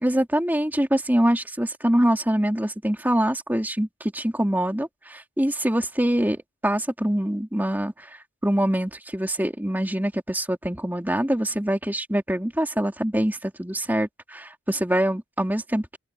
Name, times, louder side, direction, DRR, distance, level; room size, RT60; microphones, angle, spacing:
voice 1, 0.0-16.0, right 1 dB, 10° right, 2.7 m, -24 dB
head